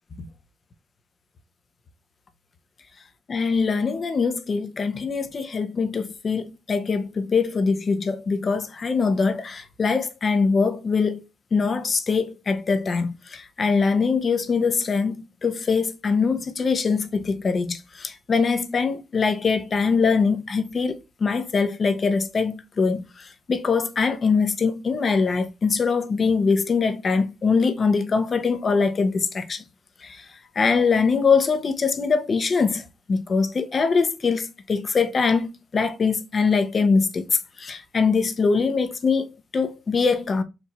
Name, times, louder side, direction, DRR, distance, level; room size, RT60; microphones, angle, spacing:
voice 1, 3.3-11.2 11.5-15.2 15.4-29.6 30.0-30.2 30.5-40.4, left 5 dB, 40° left, 0.7 m, -23 dB
4.6 x 2.6 x 4.1 m
cardioid pair, 90°, 0 cm